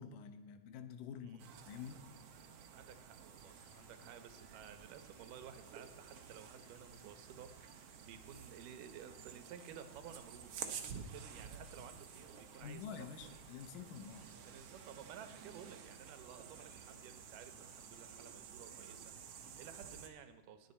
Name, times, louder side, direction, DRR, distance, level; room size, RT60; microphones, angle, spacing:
voice 1, 0.0-1.4 1.7-2.0 12.6-14.3, left 7 dB, 85° left, 9 dB, 2.6 m, -48 dB
voice 2, 1.2-1.5 2.7-13.1 14.4-20.7, right 8 dB, 85° right, 10 dB, 2.5 m, -55 dB
sound 1, 1.4-20.1, right 7 dB, 65° right, 1.7 m, -52 dB
sound 2, 3.3-18.3, left 4 dB, 65° left, 3.0 m, -69 dB
20.0 x 7.6 x 4.2 m, 1.3 s
omnidirectional pair, 3.7 m